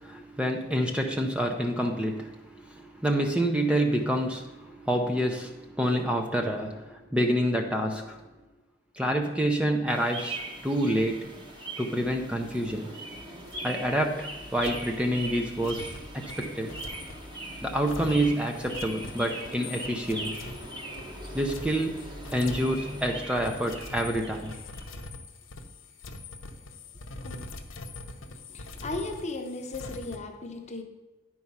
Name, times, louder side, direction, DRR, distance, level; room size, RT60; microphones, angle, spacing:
voice 1, 0.0-8.2 8.9-11.3 11.8-12.9 13.6-16.8 17.6-20.4 21.3-22.0 22.3-24.5, right 1 dB, 5° right, 3 dB, 0.5 m, -28 dB
sound 1, 9.9-25.1, right 1 dB, 25° right, 1.1 m, -40 dB
sound 2, 12.4-13.2 13.5-13.8 14.6-30.2, left 2 dB, 85° left, 0.7 m, -44 dB
voice 2, 28.5-30.8, left 2 dB, 35° left, 4 dB, 0.9 m, -36 dB
9.9 x 4.6 x 5.5 m, 1.2 s
head